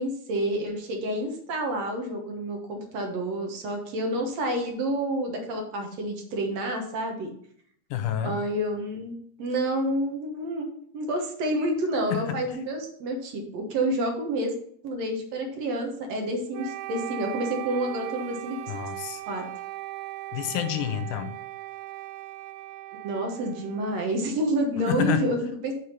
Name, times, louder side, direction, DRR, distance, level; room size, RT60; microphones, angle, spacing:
voice 1, 0.0-7.3 8.2-9.1 9.4-10.7 10.9-14.5 14.8-18.6 19.3-19.5 23.0-25.7, right 1 dB, 65° right, 2 dB, 2.2 m, -29 dB
voice 2, 7.9-8.4 12.1-12.2 18.7-19.2 20.3-21.3 24.9-25.2, left 10 dB, 85° left, 8 dB, 2.3 m, -28 dB
Wind instrument woodwind instrument, 16.5-24.6, right 17 dB, 85° right, 2.0 m, -38 dB
7.1 x 4.9 x 5.6 m, 0.64 s
omnidirectional pair, 3.5 m